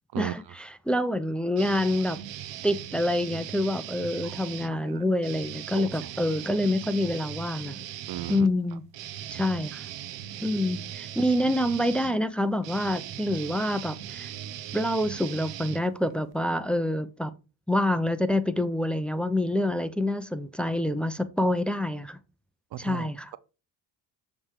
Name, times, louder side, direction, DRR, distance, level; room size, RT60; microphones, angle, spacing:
voice 1, 0.2-2.2 2.6-7.8 8.3-8.8 9.3-9.9 10.4-14.3 14.7-17.3 17.7-22.2 22.8-23.3, left 1 dB, ahead, 0.6 m, -27 dB
sound 1, 1.6-4.7 5.2-16.4, right 11 dB, 85° right, 0.9 m, -39 dB
voice 2, 4.7-5.0 5.8-6.1 8.1-8.5 9.3-9.4 22.7-23.4, right 12 dB, 60° right, 0.6 m, -37 dB
7.2 x 3.5 x 4.8 m
cardioid pair, 80°, 43 cm